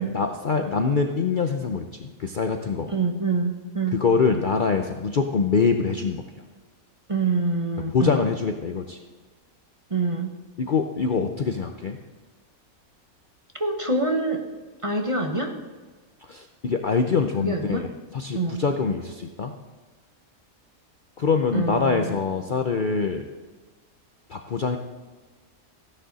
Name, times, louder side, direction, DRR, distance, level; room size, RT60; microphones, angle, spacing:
voice 1, 0.0-2.9 3.9-6.2 7.9-9.0 10.6-12.0 16.2-17.9 18.1-19.5 21.2-23.3 24.3-24.8, left 5 dB, 50° left, 5 dB, 0.7 m, -24 dB
voice 2, 2.9-4.0 7.1-8.3 9.9-10.3 13.6-14.5 14.8-15.5 17.4-17.9 18.3-18.6 21.5-22.1, right 3 dB, 25° right, 3 dB, 1.0 m, -26 dB
15.0 x 10.0 x 4.1 m, 1.3 s
omnidirectional pair, 1.5 m